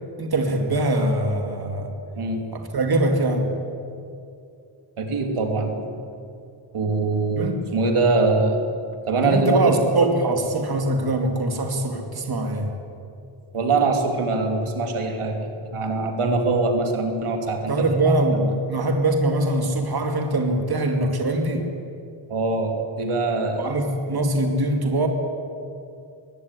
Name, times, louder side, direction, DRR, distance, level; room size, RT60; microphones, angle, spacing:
voice 1, 0.2-1.9 2.5-3.5 7.4-7.6 9.2-12.7 17.7-21.6 23.6-25.1, right 2 dB, 45° right, 4 dB, 2.5 m, -22 dB
voice 2, 2.1-2.4 5.0-5.9 6.7-8.6 9.1-9.8 13.5-17.7 18.0-18.5 22.3-23.7, right 3 dB, 85° right, 4 dB, 2.8 m, -23 dB
21.5 x 16.5 x 9.8 m, 2.5 s
wide cardioid pair, 140°, 50 cm